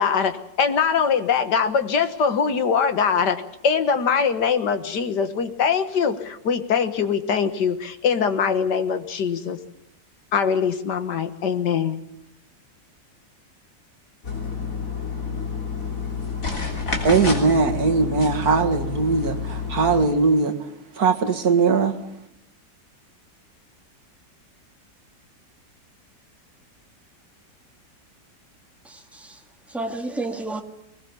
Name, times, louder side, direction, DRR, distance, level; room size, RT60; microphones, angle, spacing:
voice 1, 0.0-9.6 10.3-12.0, left 6 dB, 70° left, 2.0 m, -22 dB
sound 1, 14.2-20.1, left 5 dB, 45° left, 3.9 m, -29 dB
voice 2, 16.7-22.0, right 4 dB, 55° right, 2.3 m, -20 dB
voice 3, 28.8-29.4 29.7-30.6, right 2 dB, ahead, 1.8 m, -31 dB
21.0 x 20.5 x 7.2 m
omnidirectional pair, 1.9 m